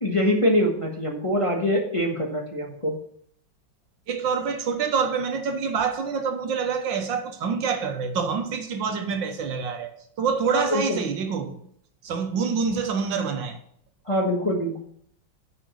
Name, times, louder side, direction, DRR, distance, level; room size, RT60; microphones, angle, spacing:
voice 1, 0.0-3.0 10.5-11.0 14.1-14.8, equal, 20° left, 1.2 m, -24 dB
voice 2, 4.1-9.9 10.2-11.6 12.0-13.6, right 5 dB, 70° right, 1.7 m, -26 dB
9.7 x 5.2 x 6.4 m
omnidirectional pair, 2.1 m